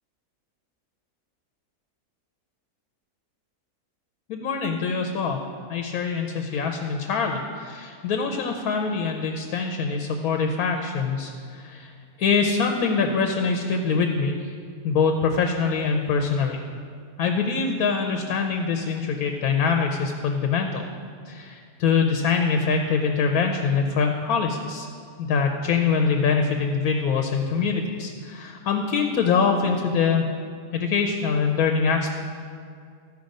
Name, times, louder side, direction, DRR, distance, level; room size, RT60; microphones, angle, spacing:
voice 1, 4.3-5.4 5.7-11.9 12.2-14.5 14.8-16.6 17.2-20.9 21.3-24.9 25.2-30.3 30.7-32.1, left 5 dB, 75° left, 4 dB, 1.1 m, -24 dB
14.0 x 5.0 x 5.2 m, 2.2 s
omnidirectional pair, 1.6 m